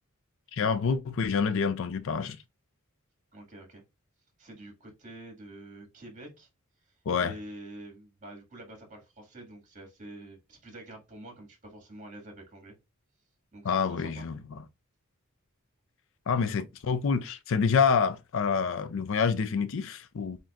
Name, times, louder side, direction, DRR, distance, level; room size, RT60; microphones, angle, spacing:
voice 1, 0.5-2.4 7.1-7.3 13.6-14.4 16.3-20.4, left 6 dB, 65° left, 0.4 m, -27 dB
voice 2, 3.3-3.8 4.4-6.5 6.9-12.7 13.5-14.3, right 1 dB, 35° right, 2.0 m, -47 dB
7.5 x 2.8 x 2.4 m
head